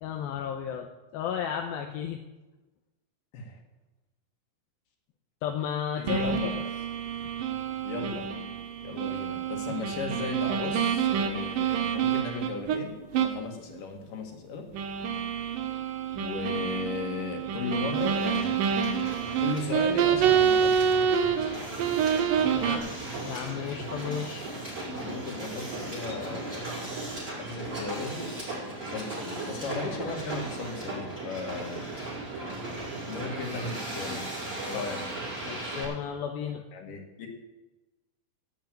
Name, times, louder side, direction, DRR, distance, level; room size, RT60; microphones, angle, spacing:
voice 1, 0.0-2.2 5.4-6.6 22.5-22.8 23.2-24.5 34.7-34.8 35.5-36.6, left 8 dB, 80° left, 3 dB, 2.6 m, -33 dB
voice 2, 6.0-6.5 7.8-8.3 8.8-14.6 16.2-18.5 19.4-20.9 22.6-22.8 25.0-26.7 27.4-28.3 28.6-31.8 33.0-34.3 34.6-35.0 36.7-37.3, left 4 dB, 65° left, 2 dB, 3.4 m, -36 dB
sound 1, 6.1-12.8 13.1-13.4 13.8-13.9 14.7-21.5 21.8-22.8, right 7 dB, 70° right, 2.6 m, -27 dB
Hiss, 18.0-35.8, right 2 dB, 20° right, 5.6 m, -37 dB
16.5 x 5.5 x 9.1 m, 1.1 s
omnidirectional pair, 4.3 m